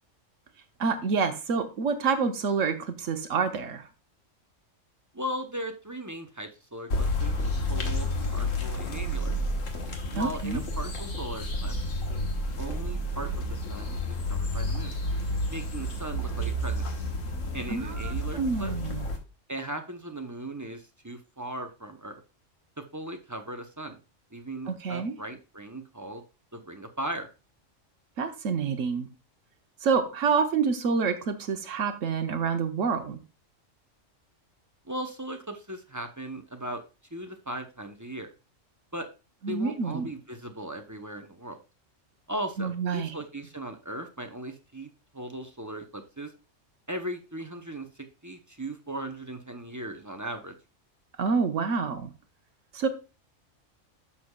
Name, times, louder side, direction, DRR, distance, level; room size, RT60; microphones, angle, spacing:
voice 1, 0.8-3.8 10.1-10.6 17.7-19.1 24.7-25.2 28.2-29.1 29.8-33.2 39.4-40.1 42.6-43.1 51.2-52.1 52.7-52.9, right 5 dB, 80° right, 8 dB, 1.2 m, -27 dB
voice 2, 5.1-7.3 7.7-9.3 10.1-11.8 12.6-14.9 15.5-16.9 17.5-18.7 19.5-22.2 22.8-24.0 24.3-26.2 26.5-27.3 34.8-36.8 37.1-38.3 38.9-39.1 39.5-41.6 42.3-46.3 46.9-47.9 48.2-50.5, right 1 dB, 20° right, 5 dB, 0.6 m, -38 dB
sound 1, 6.9-19.2, left 1 dB, 85° left, 1.6 m, -30 dB
11.0 x 6.4 x 2.3 m, 0.30 s
omnidirectional pair, 1.3 m